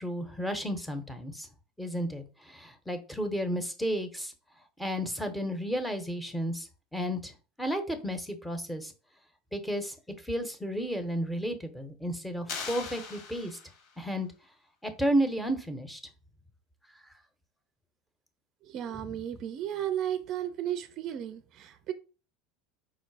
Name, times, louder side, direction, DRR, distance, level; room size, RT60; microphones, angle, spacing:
voice 1, 0.0-1.5 1.8-4.3 4.8-7.3 7.6-8.9 9.5-9.9 10.2-13.6 14.0-14.3 14.8-16.0, equal, 5° left, 0.8 m, -32 dB
sound 1, 12.5-14.0, left 5 dB, 65° left, 1.3 m, -40 dB
voice 2, 18.7-21.9, right 11 dB, 45° right, 0.4 m, -34 dB
4.8 x 2.0 x 4.5 m
supercardioid pair, 120°, 0 cm